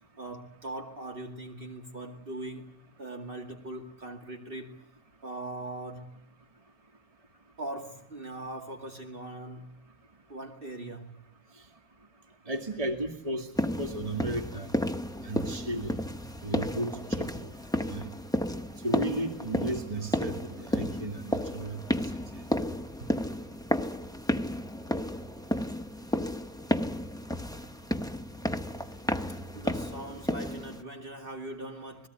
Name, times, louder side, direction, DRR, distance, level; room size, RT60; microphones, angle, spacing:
voice 1, 0.2-4.8 5.2-6.2 7.6-9.8 10.3-11.2 29.5-32.1, right 1 dB, 45° right, 2.5 m, -40 dB
voice 2, 12.5-13.5 13.8-14.7 15.2-15.9 16.4-16.9 17.2-17.5 17.9-18.1 18.8-21.8, right 1 dB, 25° right, 2.3 m, -34 dB
sound 1, 13.6-30.8, left 1 dB, 5° left, 0.7 m, -32 dB
28.0 x 19.5 x 9.6 m
omnidirectional pair, 1.3 m